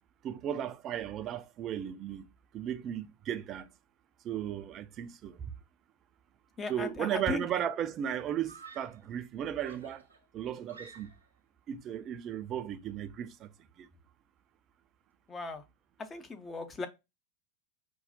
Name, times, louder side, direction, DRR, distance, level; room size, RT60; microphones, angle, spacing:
voice 1, 0.2-2.3 2.5-3.7 4.2-5.4 6.7-10.1 10.3-11.1 11.7-13.5 13.8-13.9, right 10 dB, 30° right, 0.4 m, -35 dB
voice 2, 6.6-7.4 15.3-15.6 16.0-16.9, left 3 dB, 20° left, 0.6 m, -37 dB
Screaming, 8.4-9.1 9.6-11.4, right 4 dB, 80° right, 0.8 m, -52 dB
5.3 x 2.3 x 2.6 m
figure-of-eight pair, 90°, 0 cm